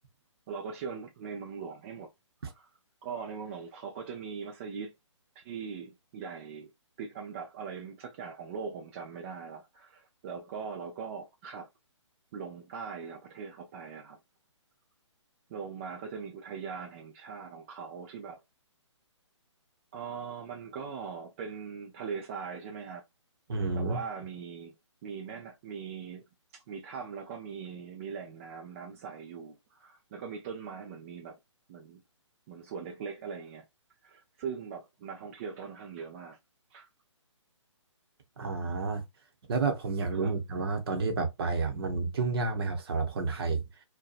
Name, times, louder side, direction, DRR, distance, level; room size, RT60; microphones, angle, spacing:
voice 1, 0.5-2.1 2.5-2.7 3.0-4.9 5.4-6.7 7.0-11.7 12.3-14.2 15.5-18.4 19.9-23.0 23.7-24.7 25.0-26.2 26.5-31.4 31.7-32.0 32.5-33.7 34.0-36.4 36.7-36.9 40.2-40.3, right 6 dB, 25° right, 0.4 m, -41 dB
voice 2, 23.5-24.0 38.4-39.0 39.5-43.6, right 4 dB, 50° right, 0.8 m, -30 dB
2.7 x 2.2 x 2.4 m
figure-of-eight pair, 140°, 16 cm